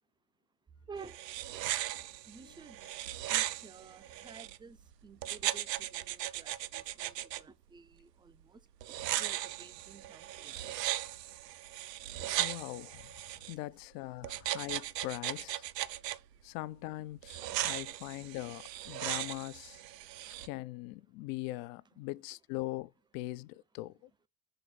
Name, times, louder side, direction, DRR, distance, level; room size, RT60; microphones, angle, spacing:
sound 1, 1.0-4.6 5.2-7.4 8.8-13.5 14.2-16.2 17.2-20.5, right 14 dB, 80° right, 0.6 m, -37 dB
voice 1, 2.3-2.9 3.3-4.8 5.0-8.6 9.2-10.7 17.4-17.5 18.1-18.3 21.9-22.0, right 5 dB, 10° right, 0.5 m, -52 dB
voice 2, 12.4-13.0 13.5-15.6 16.4-19.8 20.4-24.1, left 18 dB, 45° left, 0.5 m, -41 dB
6.6 x 3.8 x 4.2 m
figure-of-eight pair, 65°, 48 cm